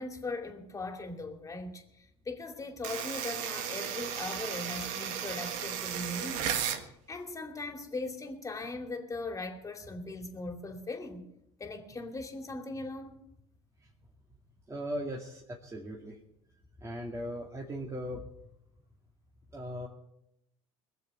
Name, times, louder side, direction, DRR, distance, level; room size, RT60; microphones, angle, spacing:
voice 1, 0.0-11.3 11.6-13.3, left 2 dB, 25° left, 2.7 m, -39 dB
sound 1, 2.8-6.8, right 9 dB, 65° right, 1.6 m, -35 dB
voice 2, 14.7-16.2 16.8-18.3 19.5-19.9, equal, 20° right, 2.3 m, -38 dB
21.0 x 7.4 x 6.8 m
hypercardioid pair, 80°, 14 cm